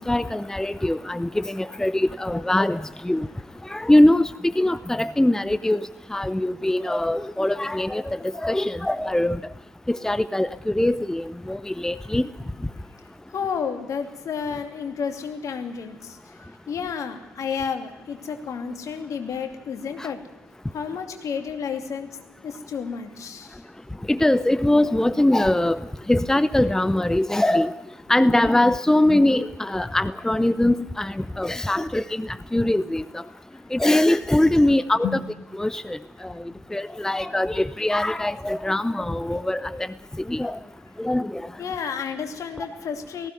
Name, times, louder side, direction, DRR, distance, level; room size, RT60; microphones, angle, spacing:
voice 1, 0.0-3.3 3.7-4.3 4.6-9.4 9.9-12.3 20.0-20.1 24.1-25.8 26.1-27.7 28.1-33.2 33.7-35.2 35.6-36.0 36.2-36.3 36.7-39.9 40.3-40.6 41.0-41.4, left 1 dB, 5° left, 17 dB, 0.7 m, -22 dB
voice 2, 13.0-20.2 20.7-22.1 22.4-23.6 35.0-35.1 41.6-43.3, left 6 dB, 50° left, 6 dB, 2.7 m, -31 dB
19.0 x 16.0 x 9.4 m, 1.1 s
figure-of-eight pair, 45°, 7 cm